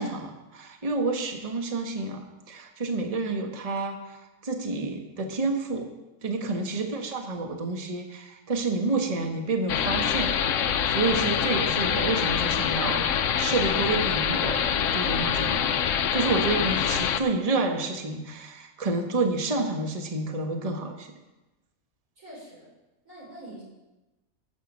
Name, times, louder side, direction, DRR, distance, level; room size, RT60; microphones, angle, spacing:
voice 1, 0.0-2.2 2.5-5.9 6.2-10.4 10.9-13.0 13.4-15.7 16.1-21.1, right 3 dB, 25° right, 4 dB, 1.2 m, -29 dB
sound 1, 9.7-17.2, left 8 dB, 65° left, 1.0 m, -25 dB
voice 2, 22.2-22.7 23.1-23.6, right 1 dB, 60° right, -5 dB, 5.5 m, -43 dB
13.0 x 6.4 x 7.3 m, 1.1 s
omnidirectional pair, 1.5 m